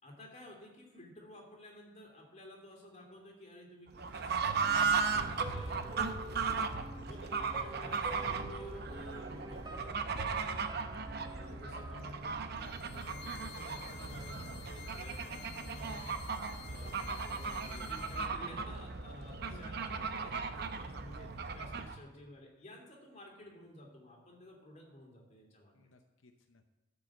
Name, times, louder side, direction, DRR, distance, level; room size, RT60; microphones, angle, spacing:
voice 1, 0.0-6.3 7.0-10.6 11.3-16.2 16.6-25.8, left 1 dB, 35° left, -1 dB, 2.8 m, -53 dB
Fowl / Bird, 3.9-22.0, right 5 dB, 55° right, 0.8 m, -37 dB
sound 1, 4.6-13.6 13.9-14.0, right 1 dB, 20° right, 0.8 m, -49 dB
voice 2, 6.7-7.0 11.5-11.6 11.9-12.0 19.3-19.6 25.7-26.7, left 3 dB, 85° left, 5 dB, 0.8 m, -60 dB
sound 2, 12.5-18.3, left 8 dB, 60° left, 1.4 m, -51 dB
12.5 x 5.5 x 7.4 m, 1.0 s
head